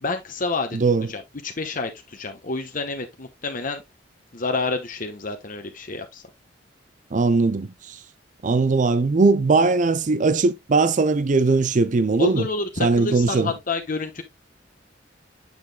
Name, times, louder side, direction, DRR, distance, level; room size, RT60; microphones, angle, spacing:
voice 1, 0.0-0.8 1.1-3.8 4.3-6.2 12.2-14.2, left 3 dB, 45° left, 1.1 m, -28 dB
voice 2, 0.7-1.1 7.1-8.0 8.4-12.5 12.8-13.5, right 3 dB, 45° right, 0.5 m, -20 dB
8.8 x 6.0 x 2.3 m
head